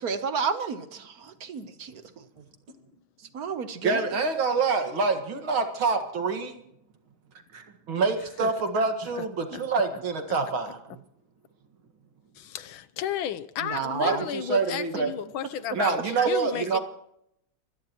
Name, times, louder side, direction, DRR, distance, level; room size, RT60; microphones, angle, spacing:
voice 1, 0.0-2.0 3.3-4.0 13.7-14.2, right 6 dB, 55° right, 1.4 m, -31 dB
voice 2, 3.8-6.6 7.5-10.8 14.0-15.1 15.7-16.8, right 4 dB, 75° right, 2.6 m, -26 dB
voice 3, 12.4-16.8, left 10 dB, 80° left, 1.6 m, -33 dB
24.5 x 17.0 x 3.0 m
omnidirectional pair, 2.2 m